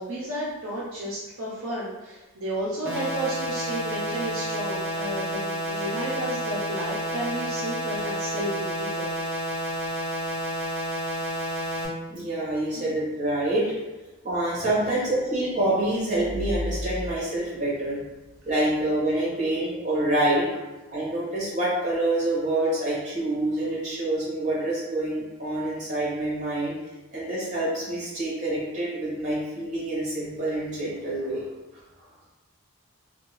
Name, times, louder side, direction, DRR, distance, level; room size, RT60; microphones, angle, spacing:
voice 1, 0.0-9.1, right 1 dB, 65° right, -7 dB, 0.6 m, -32 dB
sound 1, 2.8-11.8, equal, 10° right, 0.8 m, -30 dB
voice 2, 12.1-13.7 14.2-18.0 18.4-20.5 20.9-26.7 27.1-31.4, right 1 dB, 30° right, -7 dB, 1.1 m, -26 dB
2.6 x 2.2 x 3.0 m, 1.1 s
head